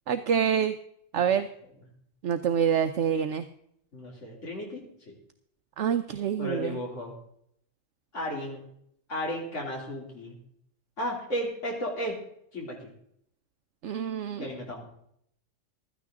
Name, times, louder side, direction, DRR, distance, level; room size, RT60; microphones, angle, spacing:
voice 1, 0.1-0.7 1.1-1.5 2.2-3.4 5.8-6.8 13.8-14.5, right 8 dB, 70° right, 9 dB, 1.0 m, -26 dB
voice 2, 3.9-4.9 6.4-7.1 8.1-8.6 9.1-10.4 11.0-12.1 12.5-12.9 14.4-14.8, equal, 65° left, -2 dB, 3.5 m, -34 dB
15.5 x 12.5 x 3.7 m, 0.70 s
omnidirectional pair, 1.3 m